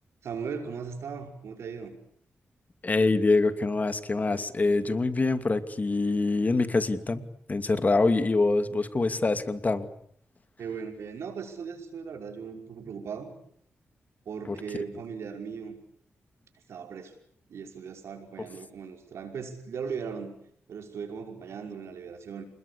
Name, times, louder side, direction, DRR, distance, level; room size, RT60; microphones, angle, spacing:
voice 1, 0.2-2.0 10.6-13.3 14.3-15.8 16.7-17.1 17.5-20.3 20.7-22.4, right 6 dB, 80° right, 5 dB, 5.6 m, -38 dB
voice 2, 2.8-7.2 7.5-9.9 14.5-14.6, left 3 dB, 35° left, 10 dB, 2.7 m, -25 dB
28.0 x 21.0 x 8.6 m, 0.65 s
cardioid pair, 65°, 5 cm